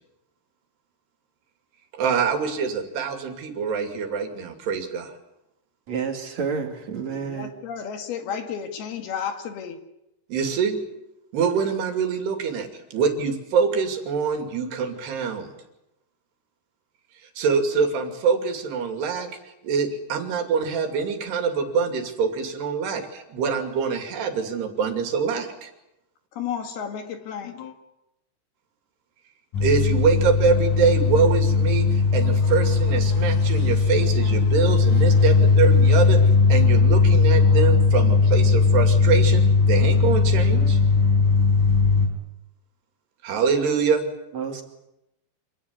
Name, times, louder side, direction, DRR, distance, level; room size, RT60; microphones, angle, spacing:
voice 1, 1.9-5.1 10.3-10.8 11.3-15.5 17.4-19.3 19.6-25.7 29.6-36.2 36.5-40.8 43.2-44.0, right 5 dB, 75° right, 4.7 m, -24 dB
voice 2, 5.9-7.5 44.3-44.6, right 6 dB, 45° right, 3.3 m, -29 dB
voice 3, 7.3-9.8 26.3-27.7, left 7 dB, 70° left, 3.7 m, -32 dB
sound 1, 29.5-42.1, left 4 dB, 50° left, 5.3 m, -18 dB
26.5 x 17.5 x 9.7 m
omnidirectional pair, 4.8 m